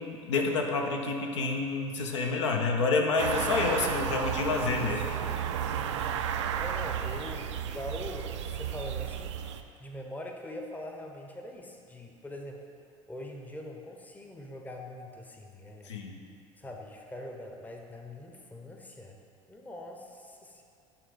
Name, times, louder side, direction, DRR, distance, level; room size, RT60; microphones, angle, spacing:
voice 1, 0.0-5.0 15.8-16.2, left 4 dB, 70° left, 2 dB, 0.7 m, -28 dB
sound 1, 3.2-9.6, right 9 dB, 65° right, 0.4 m, -33 dB
voice 2, 5.0-9.5 9.8-12.6 13.1-15.9 16.6-19.2 19.5-20.6, left 1 dB, 10° left, 2 dB, 0.8 m, -43 dB
8.8 x 3.8 x 5.0 m, 2.4 s
figure-of-eight pair, 70°, 16 cm